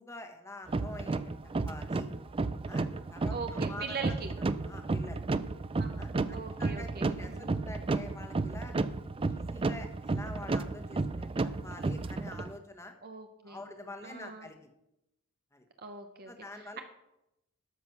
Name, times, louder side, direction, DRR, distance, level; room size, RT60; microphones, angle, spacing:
voice 1, 0.0-1.3 1.6-2.1 2.7-4.1 4.6-5.2 6.0-8.7 9.3-12.9 13.4-14.7 15.5-15.6 16.3-16.8, left 1 dB, 10° left, 5 dB, 1.2 m, -46 dB
sound 1, 0.7-12.5, right 3 dB, 25° right, 0.4 m, -33 dB
voice 2, 3.3-4.3 5.8-5.9 6.3-7.5 13.0-13.6 14.0-14.5 15.8-16.3, right 4 dB, 45° right, 6 dB, 0.8 m, -41 dB
13.0 x 6.1 x 5.9 m, 0.86 s
head